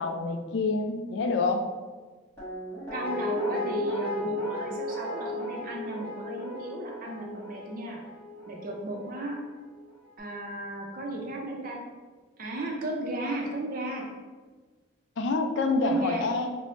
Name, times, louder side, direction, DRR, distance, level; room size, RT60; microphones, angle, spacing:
voice 1, 0.0-1.7 15.2-16.6, left 3 dB, 60° left, 6 dB, 0.3 m, -27 dB
Guitar, 2.4-9.4 9.7-9.8, left 1 dB, 10° left, 1.3 m, -35 dB
voice 2, 2.9-8.0 8.5-9.4 10.2-11.8 12.4-14.0 15.8-16.2, right 2 dB, 45° right, 0 dB, 0.5 m, -34 dB
4.1 x 2.0 x 3.1 m, 1.4 s
head